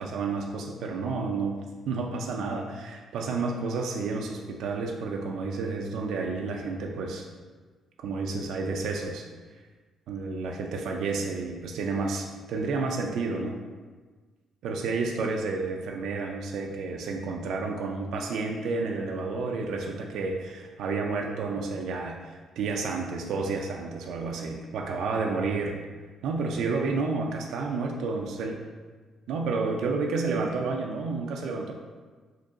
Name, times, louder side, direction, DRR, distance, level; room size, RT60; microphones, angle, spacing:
voice 1, 0.0-1.6 1.9-7.3 8.0-9.3 10.1-13.6 14.6-25.8 26.2-28.6 29.3-31.7, right 4 dB, 80° right, 1 dB, 0.3 m, -30 dB
3.7 x 2.8 x 2.6 m, 1.4 s
cardioid pair, 90°, 0 cm